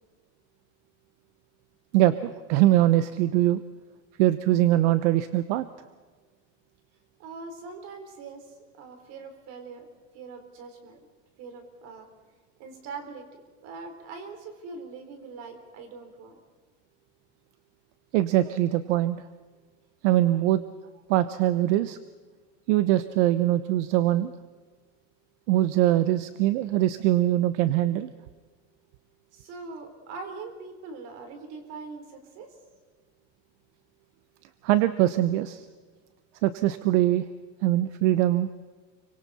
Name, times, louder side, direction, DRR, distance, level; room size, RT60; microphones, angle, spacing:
voice 1, 1.9-3.6 4.2-5.7 18.1-19.2 20.0-20.6 21.1-22.0 22.7-24.3 25.5-28.1 34.6-35.7 36.4-37.2 37.6-38.5, right 14 dB, 65° right, 12 dB, 1.0 m, -22 dB
voice 2, 7.2-9.9 10.1-11.0 11.4-12.1 12.6-16.4 29.3-32.5, right 4 dB, 40° right, 6 dB, 4.0 m, -42 dB
29.5 x 24.5 x 4.3 m, 1.4 s
cardioid pair, 175°, 38 cm